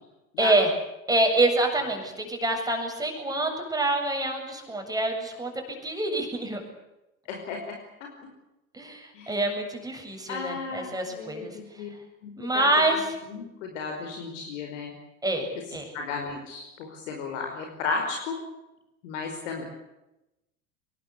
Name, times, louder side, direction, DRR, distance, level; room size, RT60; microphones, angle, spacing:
voice 1, 0.4-0.7 1.1-6.6 8.7-11.5 12.4-13.0 15.2-15.5 15.7-15.9, right 2 dB, 10° right, 3 dB, 7.8 m, -26 dB
voice 2, 7.3-7.7 8.0-8.1 9.1-9.5 10.3-11.9 12.2-12.7 13.3-14.9 15.9-18.4 19.0-19.6, left 4 dB, 60° left, 2 dB, 5.1 m, -34 dB
25.5 x 22.0 x 8.4 m, 0.93 s
figure-of-eight pair, 80°, 43 cm